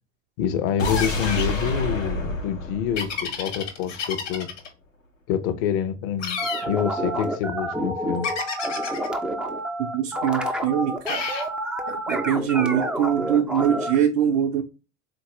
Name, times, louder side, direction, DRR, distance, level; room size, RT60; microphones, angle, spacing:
voice 1, 0.4-4.5 5.3-8.3, left 8 dB, 45° left, 0.6 m, -27 dB
sound 1, 0.8-3.9 4.2-4.3, left 1 dB, 90° left, 0.9 m, -29 dB
sound 2, 0.8-1.6 3.0-4.7 6.2-6.7 8.2-9.1 11.1-11.5, left 6 dB, 65° left, 1.3 m, -30 dB
sound 3, 6.4-14.0, right 1 dB, 5° right, 0.3 m, -28 dB
voice 2, 9.8-11.3 11.9-14.6, right 9 dB, 55° right, 0.6 m, -23 dB
4.0 x 2.6 x 2.9 m
figure-of-eight pair, 70°, 38 cm